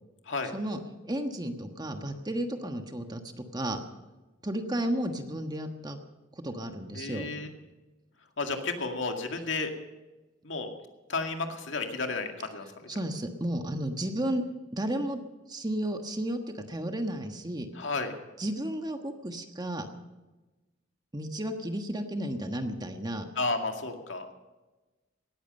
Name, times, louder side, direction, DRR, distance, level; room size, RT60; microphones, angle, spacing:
voice 1, 0.5-3.8 4.4-6.0 6.4-7.3 12.9-14.4 14.7-15.2 15.5-17.7 18.4-19.9 21.1-23.3, right 1 dB, 20° right, 6 dB, 1.3 m, -33 dB
voice 2, 6.9-7.5 8.4-9.7 10.4-10.7 11.1-12.9 17.8-18.1 23.4-24.3, left 3 dB, 70° left, 4 dB, 2.1 m, -32 dB
18.5 x 14.5 x 5.4 m, 1.2 s
head